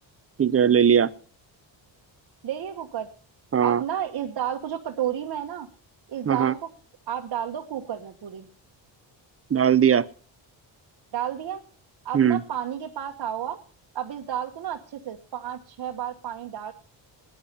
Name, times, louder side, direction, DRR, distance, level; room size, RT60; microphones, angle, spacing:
voice 1, 0.4-1.1 3.5-3.8 6.3-6.5 9.5-10.0 12.1-12.4, right 8 dB, 30° right, 18 dB, 0.6 m, -19 dB
voice 2, 2.4-3.1 3.6-5.7 6.1-6.7 7.1-8.5 11.1-11.6 12.0-13.6 13.9-16.7, right 10 dB, 55° right, 2 dB, 1.3 m, -31 dB
13.5 x 10.5 x 6.8 m, 0.43 s
cardioid pair, 95°, 46 cm